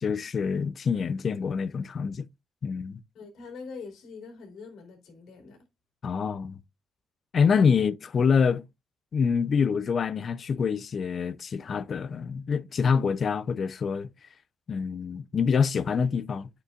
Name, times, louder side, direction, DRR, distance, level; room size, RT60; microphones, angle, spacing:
voice 1, 0.0-2.3 2.6-3.0 6.0-6.5 7.3-8.6 9.1-14.1 14.7-16.5, left 6 dB, 50° left, 0.6 m, -26 dB
voice 2, 3.1-5.7, left 4 dB, 75° left, 3.2 m, -43 dB
9.1 x 6.8 x 2.4 m
cardioid pair, 75°, 0 cm